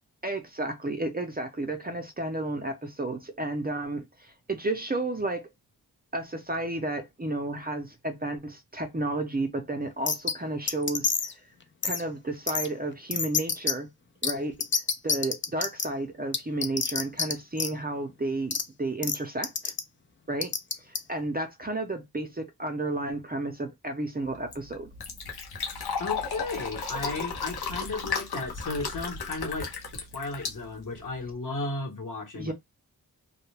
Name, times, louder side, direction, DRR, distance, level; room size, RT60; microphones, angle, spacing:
voice 1, 0.2-5.5 6.1-11.1 11.8-13.9 14.2-14.6 15.0-19.7 20.3-20.5 20.8-24.9 32.3-32.5, right 2 dB, 25° right, 0.5 m, -32 dB
sound 1, 10.1-10.3 10.7-11.3 11.8-12.0 12.5-12.7 13.1-13.7 14.2-14.3 14.6-15.8 16.3-17.3 17.6-17.7 18.5-18.6 19.0-19.2 19.4-19.8 20.4-21.0, left 5 dB, 30° left, 0.4 m, -27 dB
Fill (with liquid), 24.2-31.3, left 5 dB, 85° left, 0.7 m, -35 dB
voice 2, 26.0-29.7 30.1-32.5, left 3 dB, 55° left, 1.1 m, -34 dB
2.2 x 2.2 x 3.2 m
wide cardioid pair, 60°, 37 cm